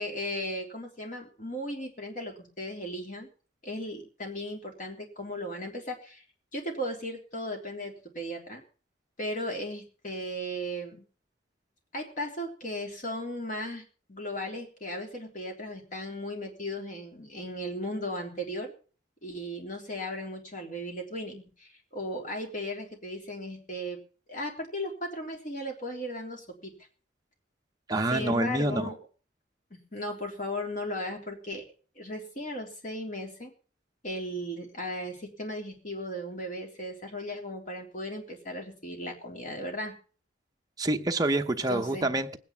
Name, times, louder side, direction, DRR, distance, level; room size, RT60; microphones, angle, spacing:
voice 1, 0.0-3.3 3.6-6.2 6.5-8.6 9.2-11.0 11.9-13.8 14.1-18.7 19.2-24.0 24.3-26.7 28.1-29.0 29.7-31.7 32.0-33.5 34.0-39.9 41.7-42.1, equal, 45° left, 3.5 m, -36 dB
voice 2, 27.9-28.9 40.8-42.4, right 2 dB, 20° right, 0.9 m, -27 dB
19.5 x 9.3 x 5.8 m
head